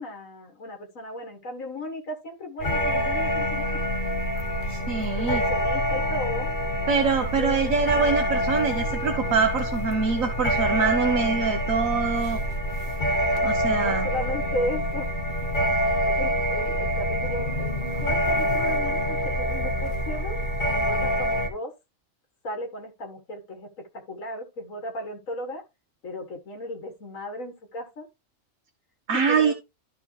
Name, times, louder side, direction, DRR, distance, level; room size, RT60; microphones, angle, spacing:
voice 1, 0.0-3.9 5.2-6.5 7.2-8.2 13.7-15.1 16.0-20.4 20.7-21.7 22.4-25.6 26.0-28.1 29.1-29.5, left 1 dB, 80° left, 3 dB, 2.0 m, -35 dB
sound 1, 2.6-21.5, equal, 40° left, 1.5 m, -26 dB
voice 2, 4.7-5.4 6.9-12.4 13.4-14.1 29.1-29.5, right 5 dB, 90° right, 4 dB, 1.5 m, -24 dB
12.5 x 5.0 x 3.2 m, 0.25 s
omnidirectional pair, 1.4 m